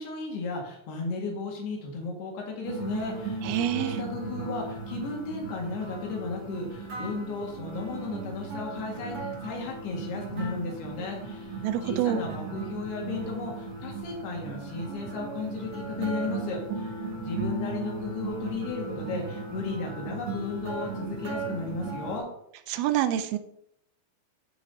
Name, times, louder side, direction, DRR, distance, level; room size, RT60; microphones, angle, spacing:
voice 1, 0.0-11.6 11.8-22.3, left 4 dB, 85° left, 0 dB, 3.9 m, -35 dB
sound 1, 2.6-22.2, right 4 dB, 45° right, 2.9 m, -36 dB
voice 2, 3.4-4.0 11.6-12.2 22.7-23.4, right 11 dB, 85° right, 10 dB, 2.5 m, -27 dB
14.0 x 5.9 x 2.8 m, 0.75 s
omnidirectional pair, 4.5 m